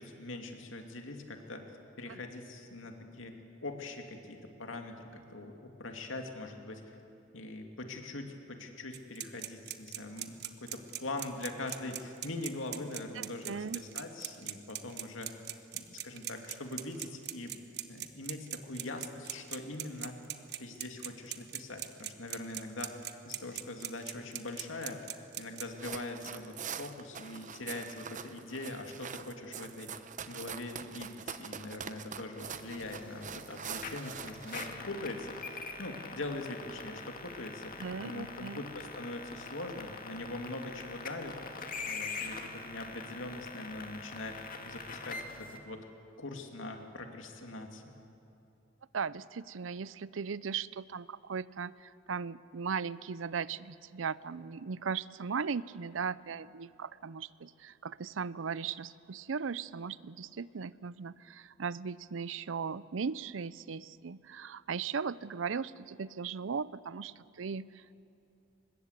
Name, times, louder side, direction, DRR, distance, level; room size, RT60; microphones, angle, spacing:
voice 1, 0.0-1.6 2.0-7.0 7.3-15.3 15.7-20.2 20.6-23.0 23.2-25.0 25.4-29.9 30.3-41.4 41.8-44.4 44.7-45.9 46.2-47.9, left 2 dB, 85° left, 4 dB, 2.6 m, -42 dB
sound 1, 8.9-25.6, right 13 dB, 60° right, 1.1 m, -39 dB
voice 2, 13.2-13.8 37.8-38.6 48.9-68.0, right 6 dB, 80° right, 19 dB, 0.5 m, -38 dB
sound 2, 25.7-34.7, right 7 dB, 40° right, 0.9 m, -44 dB
sound 3, 32.4-45.6, left 4 dB, 45° left, 1.9 m, -44 dB
24.0 x 21.0 x 8.2 m, 2.8 s
head